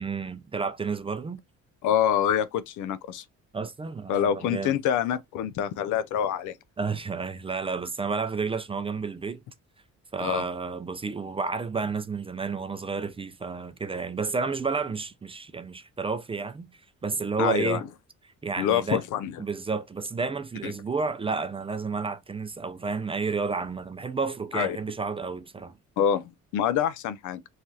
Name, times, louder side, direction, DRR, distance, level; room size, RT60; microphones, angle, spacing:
voice 1, 0.0-1.4 3.5-4.7 6.8-9.4 10.1-16.7 17.0-17.8 18.4-19.0 19.4-25.7, right 4 dB, 20° right, 0.3 m, -31 dB
voice 2, 1.8-3.2 4.1-6.6 10.2-10.4 17.4-17.8 18.6-19.3 20.6-20.7 24.5-24.8 26.0-27.4, left 9 dB, 80° left, 0.5 m, -26 dB
3.2 x 2.3 x 2.6 m
cardioid pair, 90°, 30 cm